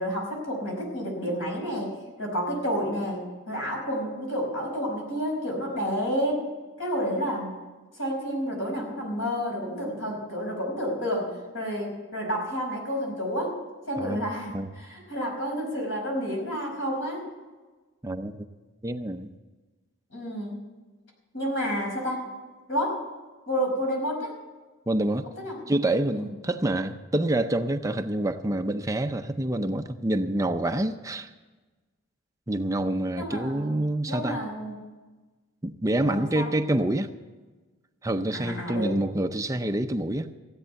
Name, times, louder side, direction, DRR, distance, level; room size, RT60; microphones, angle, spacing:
voice 1, 0.0-6.5 6.8-7.5 7.9-13.6 13.9-17.3 20.1-20.6 21.3-22.3 22.7-23.0 23.5-24.3 25.2-25.6 26.1-26.3 33.2-34.7 36.0-36.5 38.3-39.0, equal, 70° left, 0 dB, 5.2 m, -30 dB
voice 2, 18.8-19.3 24.9-25.3 25.7-31.3 32.5-34.4 35.6-37.1 38.0-40.3, right 1 dB, 15° right, 7 dB, 0.5 m, -27 dB
16.0 x 8.6 x 8.0 m, 1.3 s
head